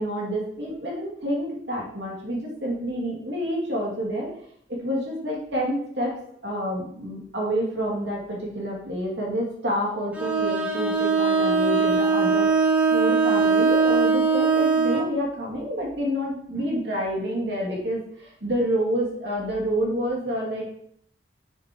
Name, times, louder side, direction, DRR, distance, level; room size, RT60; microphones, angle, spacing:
voice 1, 0.0-4.3 4.7-6.2 6.4-20.8, equal, 70° right, -3 dB, 2.5 m, -28 dB
Bowed string instrument, 10.1-15.1, right 4 dB, 10° right, 0.9 m, -21 dB
6.9 x 6.9 x 3.0 m, 0.64 s
head